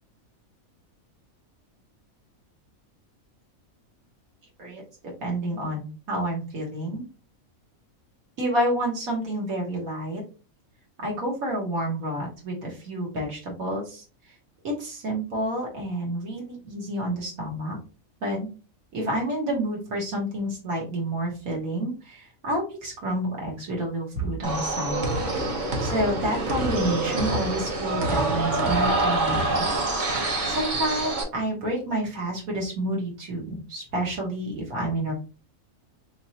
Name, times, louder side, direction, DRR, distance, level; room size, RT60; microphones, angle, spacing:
voice 1, 5.2-7.0 8.4-10.2 11.0-14.0 14.6-17.8 18.2-18.5 18.9-25.1 25.8-29.7 30.5-35.1, right 1 dB, 80° right, -2 dB, 1.7 m, -29 dB
sound 1, 24.4-31.2, right 2 dB, 40° right, 0.8 m, -26 dB
3.4 x 3.3 x 2.7 m, 0.34 s
omnidirectional pair, 1.5 m